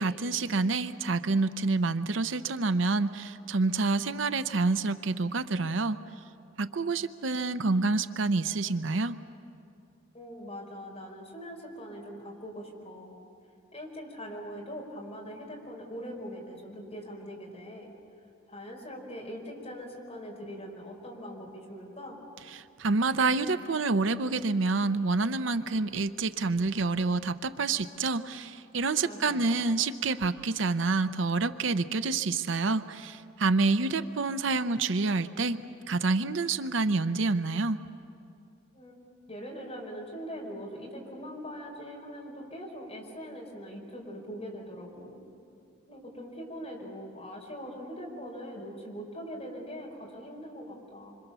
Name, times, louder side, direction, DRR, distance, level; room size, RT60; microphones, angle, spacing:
voice 1, 0.0-6.0 6.6-9.2 22.5-35.6 35.9-37.8, right 3 dB, 65° right, 11 dB, 0.7 m, -28 dB
voice 2, 10.1-13.2 13.7-17.9 18.5-22.2 29.0-29.6 38.7-38.9 39.3-45.2 45.9-51.2, equal, 30° left, -1 dB, 4.9 m, -42 dB
26.0 x 26.0 x 6.9 m, 2.6 s
head